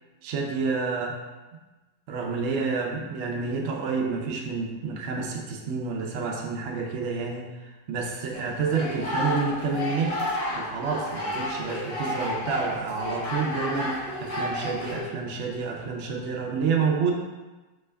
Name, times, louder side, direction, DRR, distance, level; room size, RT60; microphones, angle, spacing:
voice 1, 0.2-1.1 2.1-10.2 10.6-17.1, right 5 dB, 75° right, 0 dB, 0.6 m, -29 dB
sound 1, 8.3-15.0, left 1 dB, 65° left, 1.7 m, -31 dB
5.8 x 2.2 x 3.4 m, 1.2 s
omnidirectional pair, 1.9 m